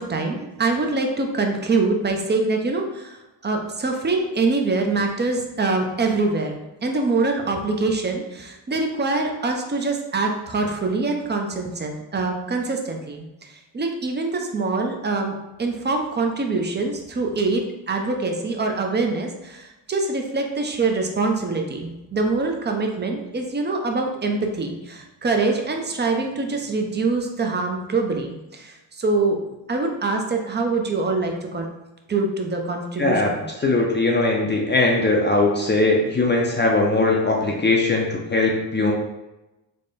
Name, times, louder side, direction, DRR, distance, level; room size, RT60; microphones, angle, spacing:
voice 1, 0.0-29.4 29.7-31.7 32.1-33.5, right 3 dB, 25° right, 3 dB, 0.6 m, -24 dB
voice 2, 33.0-33.3 33.6-38.9, left 2 dB, 25° left, -2 dB, 0.6 m, -20 dB
3.5 x 2.2 x 3.9 m, 1.0 s
cardioid pair, 80°, 46 cm